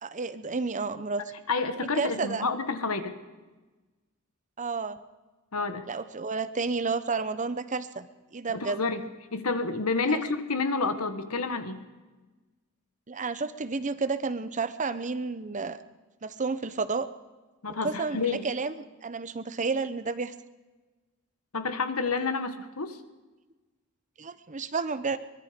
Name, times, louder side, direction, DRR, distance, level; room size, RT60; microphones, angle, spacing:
voice 1, 0.0-1.2 2.0-2.5 4.6-5.0 5.9-8.8 10.1-10.2 13.1-15.8 16.2-17.1 17.7-18.7 19.0-20.3 22.2-22.3 24.2-25.2, right 4 dB, 35° right, 13 dB, 0.9 m, -31 dB
voice 2, 1.5-3.2 5.5-5.9 8.5-9.0 9.3-11.8 17.6-18.5 21.5-23.0, left 4 dB, 85° left, 9 dB, 1.7 m, -29 dB
23.5 x 21.5 x 5.2 m, 1.2 s
head